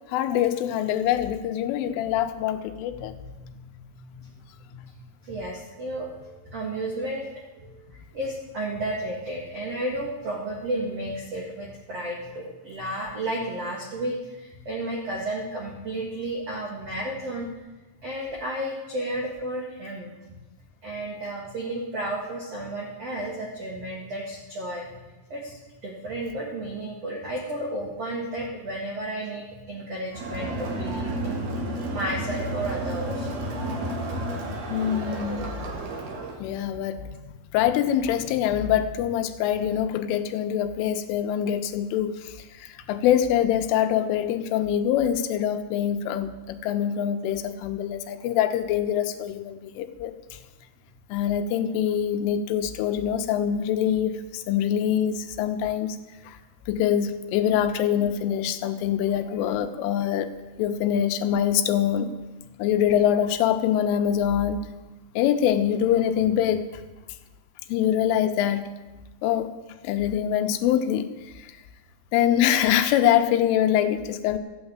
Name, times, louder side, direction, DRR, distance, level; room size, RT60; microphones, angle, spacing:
voice 1, 0.1-3.1 34.7-35.6 36.4-50.4 51.1-56.0 56.2-56.4 56.7-60.3 60.6-62.1 62.6-64.6 65.2-66.8 67.7-68.7 69.2-69.5 69.8-71.6 72.1-74.4, left 10 dB, 80° left, 8 dB, 3.2 m, -24 dB
voice 2, 2.9-7.3 7.5-7.8 8.1-17.5 18.0-20.1 20.8-24.9 25.3-31.4 31.9-33.3 36.4-36.5, right 1 dB, 85° right, -1 dB, 1.3 m, -33 dB
Crowd, 30.1-36.4, right 1 dB, 60° right, 3.2 m, -31 dB
14.0 x 8.9 x 8.7 m, 1.1 s
omnidirectional pair, 5.9 m